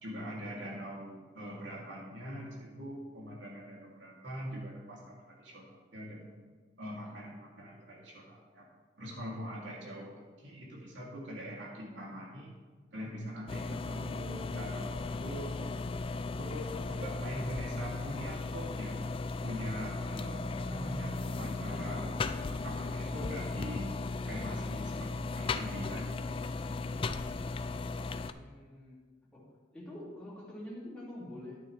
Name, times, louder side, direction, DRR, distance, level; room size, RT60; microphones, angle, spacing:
voice 1, 0.0-6.3 6.8-8.7 9.0-12.5 12.9-19.0 19.4-23.9 24.3-26.2, equal, 85° right, -3 dB, 2.6 m, -43 dB
sound 1, 13.5-28.3, left 3 dB, 30° left, 0.3 m, -36 dB
voice 2, 28.1-29.0 29.3-31.6, left 1 dB, 5° left, -7 dB, 2.4 m, -46 dB
11.0 x 9.4 x 3.3 m, 1.4 s
head